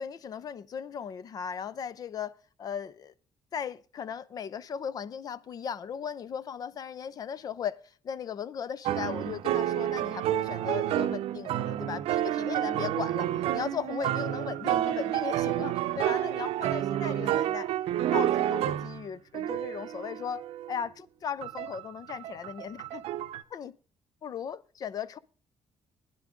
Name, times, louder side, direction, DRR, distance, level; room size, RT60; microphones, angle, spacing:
voice 1, 0.0-3.1 3.5-17.7 18.1-20.4 20.7-23.0 23.5-23.7 24.2-25.2, left 7 dB, 40° left, 0.5 m, -37 dB
sound 1, 8.9-19.0 19.3-20.8 21.4-23.4, right 12 dB, 85° right, 0.6 m, -30 dB
15.5 x 10.5 x 3.7 m
cardioid pair, 165°, 10 cm